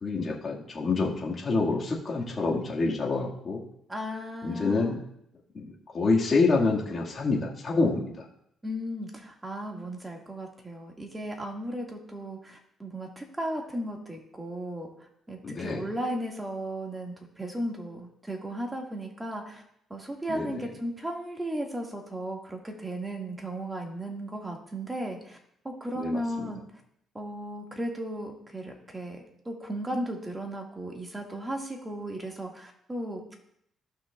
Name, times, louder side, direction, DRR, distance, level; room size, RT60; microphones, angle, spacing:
voice 1, 0.0-3.6 4.4-5.0 5.5-8.2 15.4-15.8 20.3-20.6 25.9-26.5, left 3 dB, 40° left, -2 dB, 1.8 m, -27 dB
voice 2, 3.9-5.0 8.6-14.9 15.3-19.6 19.9-25.4 25.6-26.6 27.1-33.3, right 1 dB, 15° right, 1 dB, 1.8 m, -35 dB
15.0 x 5.9 x 2.4 m, 0.73 s
cardioid pair, 90°, 0 cm